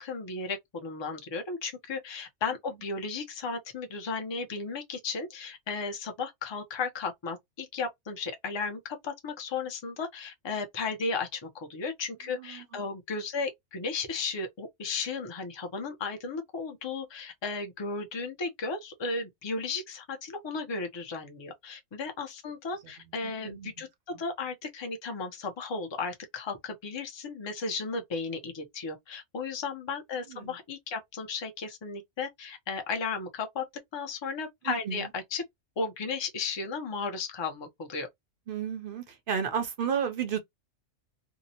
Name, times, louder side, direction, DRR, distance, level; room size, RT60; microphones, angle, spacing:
voice 1, 0.0-33.6 33.9-35.4 35.8-38.1, left 4 dB, 40° left, 0.4 m, -35 dB
voice 2, 12.3-12.9 23.2-23.9 30.3-30.5 34.6-35.1 38.5-40.4, right 7 dB, 60° right, 0.6 m, -33 dB
2.7 x 2.0 x 2.7 m
omnidirectional pair, 1.3 m